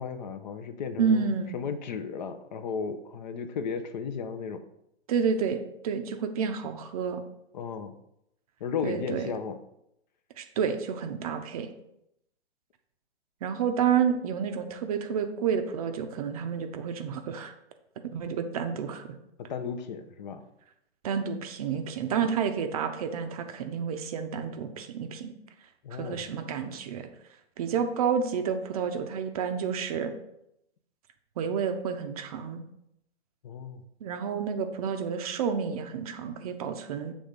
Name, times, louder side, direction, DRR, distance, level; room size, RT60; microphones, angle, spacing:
voice 1, 0.0-4.6 7.5-8.0 8.6-9.6 19.4-20.4 22.2-22.3 25.8-26.3 33.4-33.8, left 6 dB, 40° left, 10 dB, 0.6 m, -35 dB
voice 2, 1.0-1.6 5.1-7.2 8.8-9.3 10.4-11.7 13.4-17.5 18.0-19.1 21.0-25.3 25.9-27.1 27.6-30.1 31.4-32.6 34.0-37.1, right 7 dB, 35° right, 7 dB, 0.6 m, -30 dB
7.1 x 3.5 x 5.1 m, 0.79 s
hypercardioid pair, 145°, 34 cm